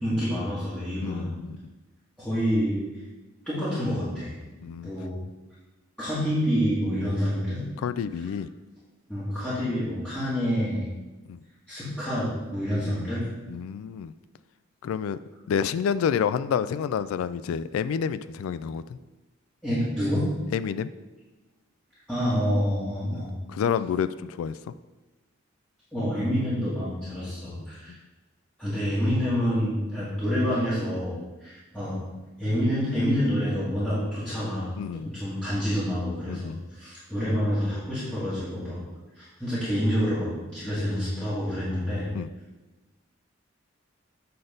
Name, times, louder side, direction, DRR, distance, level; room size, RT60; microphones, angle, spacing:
voice 1, 0.0-1.3 2.2-2.8 3.4-4.4 4.8-5.2 6.0-7.6 9.1-10.9 11.7-13.2 19.6-20.3 22.1-23.3 25.9-27.9 28.6-32.0 32.4-38.8 39.2-42.1, equal, 5° left, -12 dB, 1.8 m, -27 dB
voice 2, 1.0-1.6 4.6-4.9 7.8-8.5 11.3-11.4 12.8-13.1 13.5-14.1 14.8-15.2 15.5-19.0 20.5-20.9 23.1-24.6 34.8-35.1 36.3-36.6 42.1-42.3, left 7 dB, 80° left, 15 dB, 0.3 m, -29 dB
7.8 x 3.9 x 5.1 m, 1.1 s
head